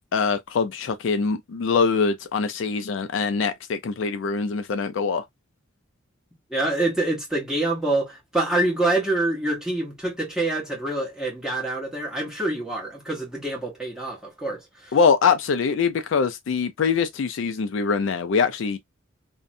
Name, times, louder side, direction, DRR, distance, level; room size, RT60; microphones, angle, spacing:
voice 1, 0.1-5.2 14.9-18.8, left 5 dB, 65° left, 0.4 m, -23 dB
voice 2, 6.5-14.9 16.5-16.6, right 2 dB, 5° right, 1.0 m, -26 dB
2.6 x 2.1 x 2.4 m
head